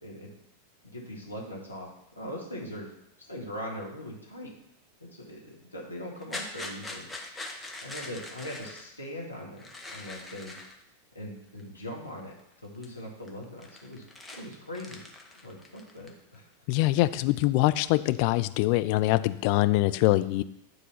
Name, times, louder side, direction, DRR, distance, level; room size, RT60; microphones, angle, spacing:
voice 1, 0.0-0.3 0.8-2.9 3.3-4.5 5.0-7.1 7.8-9.7 9.9-10.5 11.2-12.4 12.6-14.0 14.3-15.0 15.4-16.5, equal, 85° left, -2 dB, 2.0 m, -40 dB
sound 1, 6.1-8.9 9.6-10.8 11.6-11.7 12.2-12.5 12.8-13.0 13.2-16.4 16.7-17.4, left 2 dB, 10° left, 1.0 m, -42 dB
voice 2, 16.7-20.4, left 18 dB, 45° left, 12 dB, 0.4 m, -24 dB
9.7 x 4.0 x 5.7 m, 0.78 s
figure-of-eight pair, 90°, 0 cm